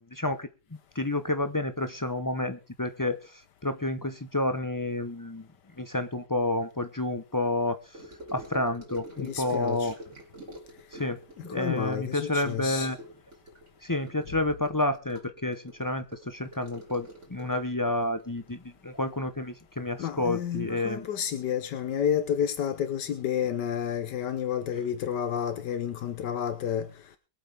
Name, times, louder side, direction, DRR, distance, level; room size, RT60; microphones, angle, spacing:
voice 1, 0.1-0.5 0.9-5.5 5.8-8.0 8.3-9.9 10.9-13.0 13.8-21.1, left 2 dB, 25° left, 0.4 m, -30 dB
Gurgling / Sink (filling or washing) / Trickle dribble, 7.9-19.6 19.9-20.2 20.5-20.6, right 1 dB, 45° right, 3.7 m, -47 dB
voice 2, 9.2-9.9 11.4-12.9 20.0-26.9, left 9 dB, 80° left, 1.6 m, -30 dB
23.0 x 7.7 x 3.5 m
omnidirectional pair, 1.8 m